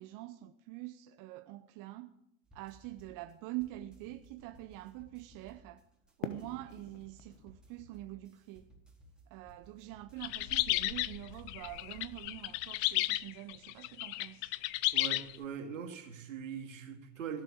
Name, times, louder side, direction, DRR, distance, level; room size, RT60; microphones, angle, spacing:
voice 1, 0.0-2.1 2.5-5.9 6.2-8.7 9.3-14.5, right 17 dB, 55° right, 0.9 m, -45 dB
sound 1, 2.4-12.3, right 2 dB, ahead, 4.2 m, -60 dB
Fireworks, 6.2-9.3, left 7 dB, 90° left, 1.1 m, -46 dB
sound 2, 10.2-15.4, left 19 dB, 60° left, 0.7 m, -33 dB
voice 2, 14.9-17.4, right 7 dB, 85° right, 2.5 m, -41 dB
17.0 x 7.6 x 8.7 m
hypercardioid pair, 75°, 38 cm